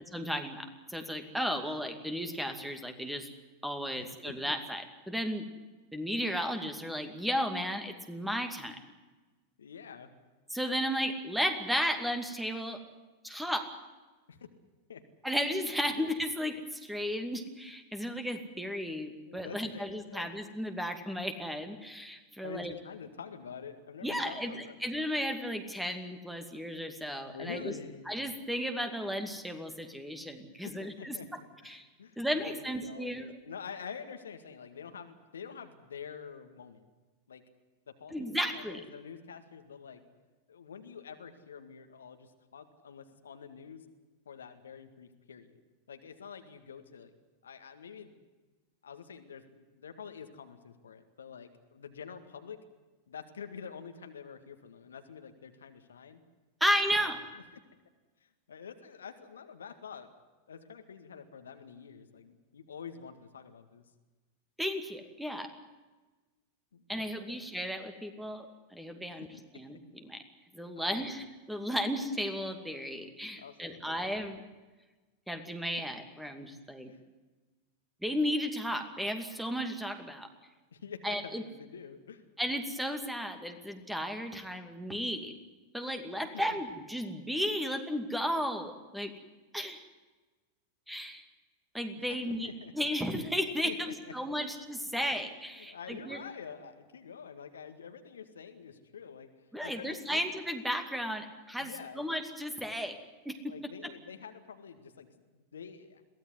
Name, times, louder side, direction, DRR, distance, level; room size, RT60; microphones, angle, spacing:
voice 1, 0.1-3.3 3.6-5.5 5.9-8.8 10.5-12.8 13.2-13.7 15.2-22.7 24.0-27.7 28.1-31.2 31.6-31.8 32.2-33.3 38.1-38.8 56.6-57.2 64.6-65.5 66.9-69.3 69.5-70.2 70.5-74.4 75.3-76.9 78.0-80.3 81.0-81.4 82.4-85.3 85.7-89.1 89.5-89.8 90.9-91.2 91.7-96.2 99.5-103.0 103.2-103.5 103.8-103.9, equal, 5° right, 7 dB, 2.4 m, -34 dB
voice 2, 4.0-4.4 9.6-10.1 14.3-14.5 14.9-15.0 15.9-16.1 19.2-20.3 22.4-24.8 27.2-28.0 30.6-31.3 31.6-36.8 37.3-37.4 37.9-40.0 40.5-43.9 44.3-45.5 45.9-47.1 47.4-48.2 48.8-52.6 53.1-56.2 56.9-57.1 57.5-57.6 58.2-60.1 60.5-63.8 66.7-67.4 69.2-69.4 70.7-71.1 73.3-73.9 75.7-75.8 76.9-77.0 80.7-82.2 86.3-86.6 92.1-92.7 93.6-93.9 94.3-94.5 94.8-95.0 95.6-99.3 99.6-100.2 101.6-102.0 103.5-105.1 105.3-106.0, left 6 dB, 70° left, 7 dB, 2.0 m, -47 dB
22.5 x 16.5 x 9.6 m, 1.2 s
figure-of-eight pair, 90°, 0 cm